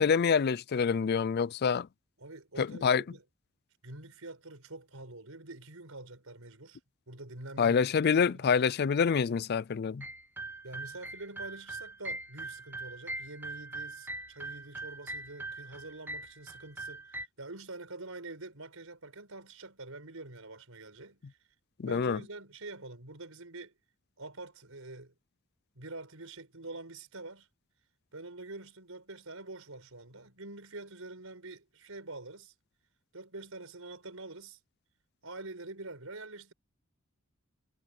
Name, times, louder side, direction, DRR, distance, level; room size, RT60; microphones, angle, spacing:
voice 1, 0.0-1.9 2.6-3.0 7.6-10.0 21.8-22.2, left 6 dB, 50° left, 0.4 m, -26 dB
voice 2, 2.2-3.2 3.8-6.8 7.1-8.7 10.6-21.4 21.9-23.7 24.2-25.1 25.8-27.5 28.1-32.5 33.1-34.6 35.2-36.5, right 2 dB, 85° right, 5.1 m, -46 dB
sound 1, 10.0-17.3, right 2 dB, 10° right, 1.3 m, -42 dB
head